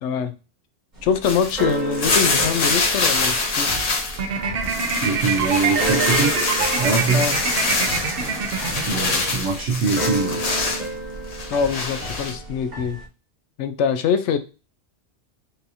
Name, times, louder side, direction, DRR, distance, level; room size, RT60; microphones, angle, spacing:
voice 1, 0.0-0.3 1.0-3.8 7.1-7.3 11.5-13.0 13.6-14.4, left 7 dB, 90° left, 9 dB, 0.9 m, -23 dB
Keyboard (musical), 0.9-13.1, right 2 dB, 40° right, 1.4 m, -32 dB
sound 1, 1.2-4.2 4.5-10.9 11.3-12.3, left 3 dB, 40° left, 0.7 m, -24 dB
sound 2, 4.2-9.4, right 6 dB, 60° right, 0.8 m, -26 dB
voice 2, 5.0-6.4 6.8-7.3 8.9-10.4, right 4 dB, 80° right, 1 dB, 1.0 m, -23 dB
5.4 x 2.6 x 2.8 m, 0.32 s
omnidirectional pair, 1.2 m